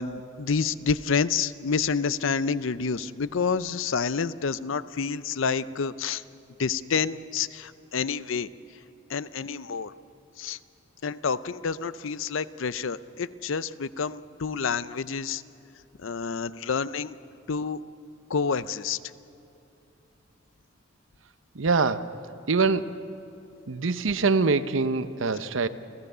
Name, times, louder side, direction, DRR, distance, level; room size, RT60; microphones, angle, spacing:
voice 1, 0.0-6.2 6.6-8.5 9.1-9.9 10.4-10.6 11.0-15.4 16.0-17.2 17.5-17.8 18.3-19.0, left 5 dB, 80° left, 15 dB, 0.6 m, -28 dB
voice 2, 21.5-22.1 22.5-23.0 23.7-25.7, right 4 dB, 80° right, 12 dB, 0.8 m, -24 dB
29.0 x 15.5 x 6.8 m, 2.9 s
head